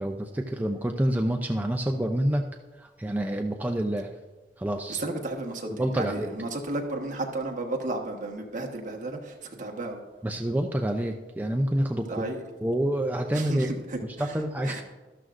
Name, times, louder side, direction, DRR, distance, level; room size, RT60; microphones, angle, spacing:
voice 1, 0.0-2.4 2.8-4.1 4.6-5.0 5.6-6.3 10.2-12.3 12.6-13.7 14.2-14.8, right 1 dB, 10° right, 2 dB, 0.5 m, -27 dB
voice 2, 4.9-10.0 12.1-12.4 13.3-14.4 14.6-14.8, right 2 dB, 45° right, 2 dB, 1.3 m, -33 dB
12.5 x 12.5 x 2.5 m, 1.2 s
head